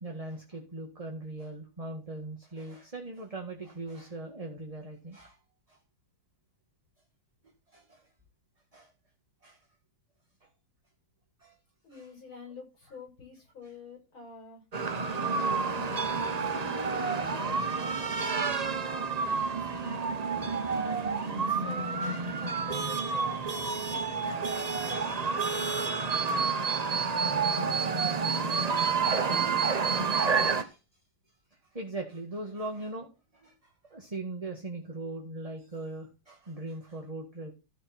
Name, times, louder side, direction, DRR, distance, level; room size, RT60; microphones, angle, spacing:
voice 1, 0.0-5.4 5.7-5.8 7.7-8.1 8.7-8.9 9.4-9.6 11.4-11.6 11.9-12.1 15.1-15.5 20.6-21.5 22.0-22.3 24.9-25.1 30.0-30.8 31.7-33.1 33.3-37.5, right 2 dB, 20° right, 1.8 m, -41 dB
voice 2, 11.8-14.6 15.7-19.7 20.3-26.3, left 3 dB, 85° left, 7.9 m, -48 dB
sound 1, 14.7-30.6, right 5 dB, 80° right, 0.3 m, -29 dB
13.5 x 6.7 x 4.4 m
omnidirectional pair, 2.2 m